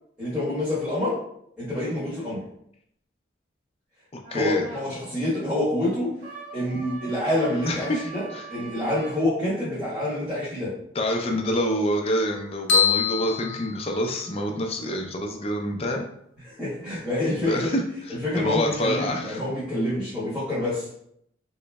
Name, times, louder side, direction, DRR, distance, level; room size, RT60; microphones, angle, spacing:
voice 1, 0.2-1.2 1.6-2.4 4.3-6.2 6.5-10.8 16.4-17.7 18.1-20.9, left 1 dB, 5° right, -14 dB, 1.2 m, -27 dB
voice 2, 4.1-4.6 6.7-6.8 7.7-8.5 11.0-16.0 17.4-17.8 18.1-19.4, equal, 30° left, 2 dB, 0.5 m, -27 dB
sound 1, 4.2-4.9 6.2-9.2, right 4 dB, 65° right, 1.4 m, -42 dB
sound 2, 12.7-14.5, left 7 dB, 70° left, 0.8 m, -24 dB
3.8 x 3.0 x 2.2 m, 0.70 s
head